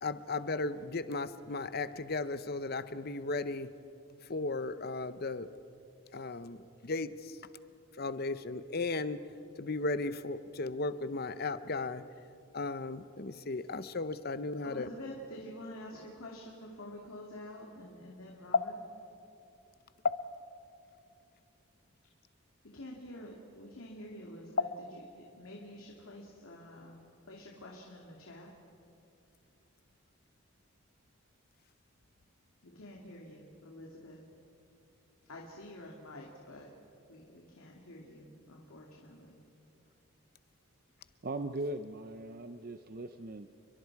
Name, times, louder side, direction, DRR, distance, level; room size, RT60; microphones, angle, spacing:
voice 1, 0.0-3.7 4.3-5.5 6.1-7.4 8.0-9.2 9.6-12.0 12.5-14.9 20.0-20.2, left 3 dB, 45° left, 13 dB, 0.8 m, -35 dB
voice 2, 14.6-18.7 22.7-24.7 25.2-27.0 27.3-28.5 32.6-34.2 35.3-36.7 37.1-39.4, left 1 dB, 80° left, -1 dB, 2.5 m, -48 dB
voice 3, 41.2-43.5, right 2 dB, 45° right, 8 dB, 0.6 m, -39 dB
30.0 x 23.0 x 4.7 m, 2.6 s
head